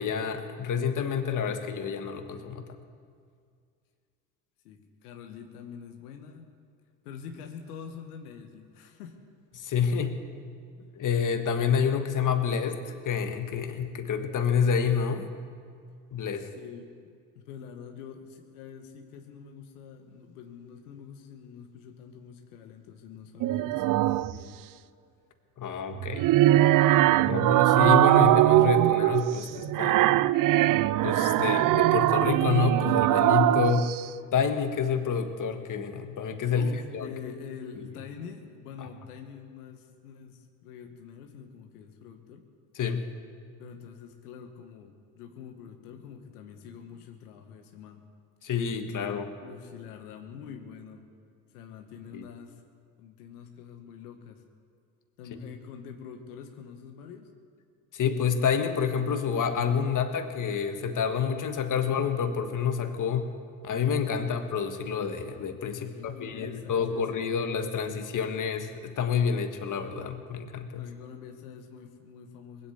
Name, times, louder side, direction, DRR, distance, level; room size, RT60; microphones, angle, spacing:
voice 1, 0.0-2.6 9.6-10.2 10.9-15.3 16.1-16.5 25.6-26.3 27.3-30.2 31.0-34.0 34.3-37.1 38.8-38.9 42.7-43.1 48.4-49.3 52.1-52.3 57.9-63.3 63.6-70.9, left 6 dB, 45° left, 7 dB, 1.6 m, -28 dB
voice 2, 4.6-6.5 7.0-9.2 9.8-9.9 16.4-16.9 17.3-24.6 36.5-42.4 43.6-48.1 48.8-51.1 51.5-52.6 53.0-54.4 55.2-57.3 65.8-67.3 70.7-72.7, left 7 dB, 85° left, 4 dB, 1.3 m, -45 dB
sound 1, 23.4-24.4 25.9-34.0, right 14 dB, 50° right, 0.5 m, -21 dB
20.0 x 8.2 x 8.5 m, 2.2 s
hypercardioid pair, 65°, 44 cm